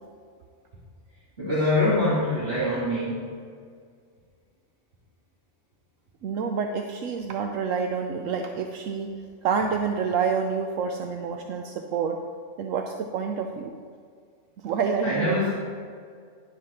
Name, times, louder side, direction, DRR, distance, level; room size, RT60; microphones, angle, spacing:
voice 1, 1.4-3.2 15.0-15.5, left 1 dB, 45° right, -11 dB, 2.7 m, -24 dB
voice 2, 6.2-9.1 9.4-12.2 12.6-13.7 14.6-15.5, right 6 dB, 80° right, 4 dB, 1.0 m, -28 dB
11.0 x 7.5 x 4.3 m, 2.1 s
omnidirectional pair, 1.4 m